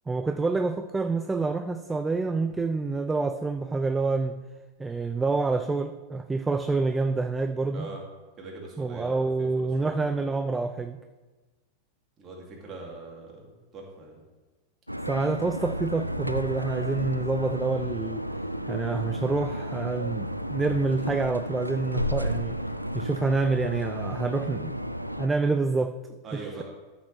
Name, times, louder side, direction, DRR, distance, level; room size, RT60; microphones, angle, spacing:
voice 1, 0.1-4.4 4.8-7.9 8.8-11.0 15.1-18.2 18.7-22.6 22.9-24.8 25.2-26.6, right 3 dB, 10° right, 9 dB, 0.4 m, -27 dB
voice 2, 8.4-10.2 12.2-14.2 26.2-26.6, right 3 dB, 30° right, -2 dB, 2.9 m, -42 dB
sound 1, 14.9-25.3, equal, 90° right, 0.4 m, -32 dB
13.0 x 6.8 x 3.5 m, 1.2 s
figure-of-eight pair, 90°, 0 cm